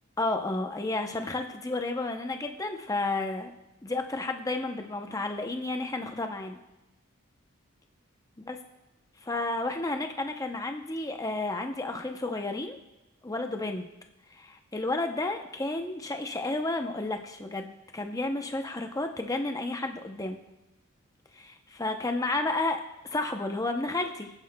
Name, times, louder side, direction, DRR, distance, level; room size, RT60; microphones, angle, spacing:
voice 1, 0.2-3.5 3.8-6.6 8.5-8.6 9.2-12.8 13.2-13.9 14.3-20.4 21.3-24.3, left 2 dB, 15° left, 5 dB, 0.6 m, -31 dB
18.0 x 9.6 x 2.2 m, 0.97 s
head